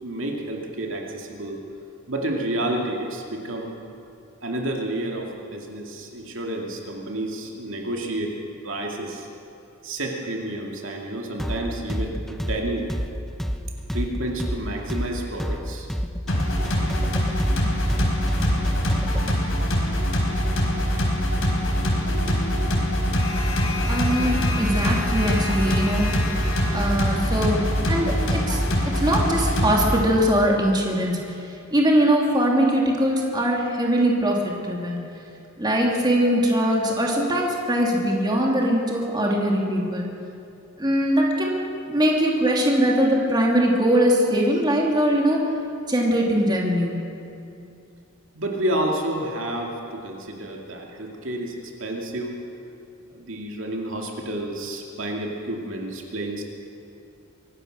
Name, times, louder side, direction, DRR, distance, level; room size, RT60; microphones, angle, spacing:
voice 1, 0.0-1.6 2.1-3.8 4.4-8.3 8.6-9.3 9.8-12.9 13.9-15.9 48.3-52.4 53.1-56.5, right 1 dB, 65° right, 0 dB, 2.5 m, -30 dB
sound 1, 11.4-19.3, equal, ahead, 0.8 m, -28 dB
sound 2, 16.3-30.0, equal, 85° left, 4.6 m, -23 dB
voice 2, 23.9-26.1 26.7-28.6 28.9-31.2 31.7-35.0 35.6-40.0 40.8-41.6 41.9-45.4 45.9-47.0, equal, 20° right, -1 dB, 2.7 m, -21 dB
24.0 x 17.0 x 6.6 m, 2.6 s
head